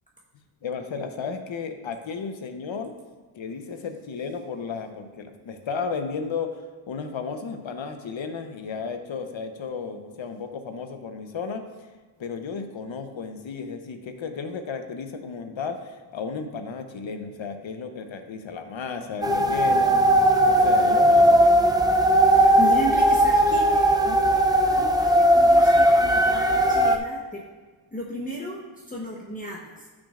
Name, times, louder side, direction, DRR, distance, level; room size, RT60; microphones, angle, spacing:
voice 1, 0.6-3.0 3.3-11.7 12.2-20.0 20.4-21.7, left 5 dB, 65° left, 6 dB, 1.0 m, -33 dB
sound 1, 19.2-27.0, right 1 dB, 10° right, 0.4 m, -18 dB
voice 2, 22.2-24.2 24.7-27.4 27.9-29.9, right 1 dB, 15° left, -3 dB, 1.0 m, -35 dB
13.0 x 6.3 x 2.5 m, 1.4 s
wide cardioid pair, 95°, 50 cm